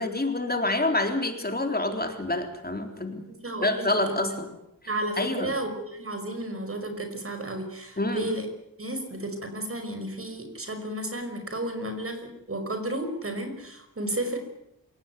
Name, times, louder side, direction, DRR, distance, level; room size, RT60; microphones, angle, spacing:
voice 1, 0.0-3.2 3.6-4.5 5.2-5.6 8.0-8.3, left 2 dB, 30° left, 5 dB, 3.8 m, -27 dB
voice 2, 3.3-3.9 4.9-8.5 8.8-14.4, right 1 dB, 40° right, 7 dB, 5.5 m, -32 dB
27.5 x 17.5 x 9.4 m, 0.82 s
wide cardioid pair, 105°, 33 cm